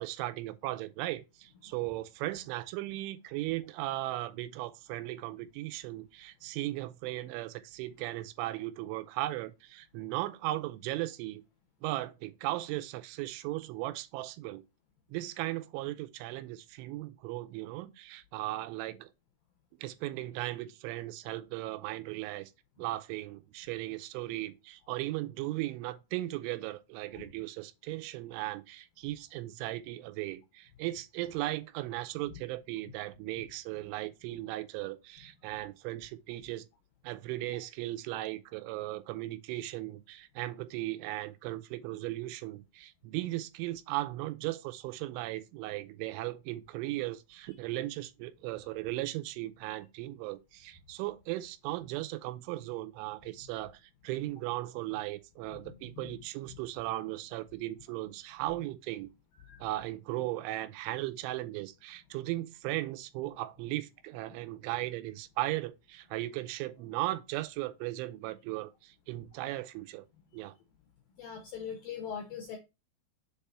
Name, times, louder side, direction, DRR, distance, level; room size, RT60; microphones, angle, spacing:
voice 1, 0.0-11.4 11.8-14.6 15.1-19.1 19.8-22.5 22.8-36.7 37.0-59.1 59.6-70.1 70.3-70.5, right 17 dB, 85° right, 3.0 m, -37 dB
voice 2, 55.5-56.2 59.4-59.7 71.2-72.6, left 7 dB, 80° left, 2.1 m, -42 dB
7.3 x 3.5 x 4.2 m
omnidirectional pair, 5.5 m